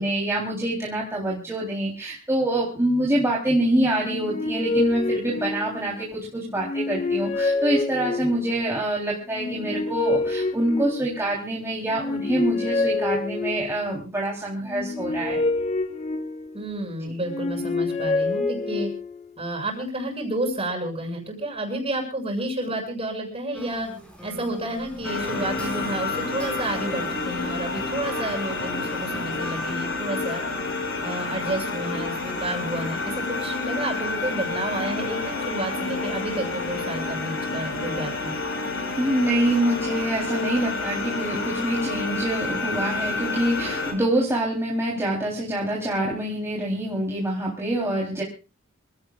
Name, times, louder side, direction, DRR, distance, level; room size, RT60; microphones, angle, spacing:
voice 1, 0.0-15.4 17.0-17.1 39.0-48.2, right 1 dB, 15° right, -4 dB, 3.5 m, -25 dB
sound 1, 4.0-6.1 6.6-8.6 9.3-11.4 11.9-13.9 14.6-16.7 17.2-19.2, left 3 dB, 30° left, 1.1 m, -27 dB
voice 2, 16.5-18.9 19.4-23.9 24.2-30.4 31.0-38.3, right 1 dB, 30° right, 3 dB, 6.7 m, -30 dB
sound 2, 23.5-29.8, right 1 dB, 5° left, 5.4 m, -39 dB
sound 3, 25.0-43.9, left 3 dB, 70° left, 6.0 m, -29 dB
27.0 x 17.0 x 2.4 m, 0.34 s
head